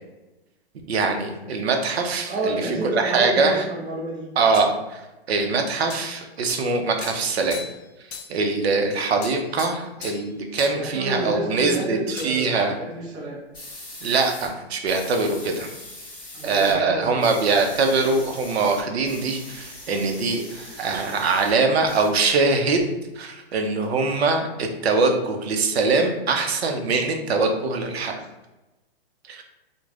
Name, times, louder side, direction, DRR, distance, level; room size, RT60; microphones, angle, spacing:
voice 1, 0.9-3.6 4.4-5.0 5.3-7.6 8.3-12.8 14.0-15.7 16.4-22.8 23.2-28.2 29.3-29.4, right 3 dB, 80° right, 4 dB, 0.5 m, -23 dB
voice 2, 2.2-4.3 10.7-13.4 16.3-17.3, right 2 dB, 15° right, -4 dB, 0.4 m, -29 dB
sound 1, 4.5-4.7 5.9-6.1 6.5-6.8 7.0-7.9 8.1-8.4 9.2-10.3 10.6-10.8 12.2-12.6, left 6 dB, 85° left, 0.5 m, -38 dB
sound 2, 13.5-14.5 14.9-16.7 17.0-21.5 21.8-22.8, left 1 dB, 15° left, 1.1 m, -41 dB
3.1 x 2.1 x 2.3 m, 1.0 s
hypercardioid pair, 130°, 31 cm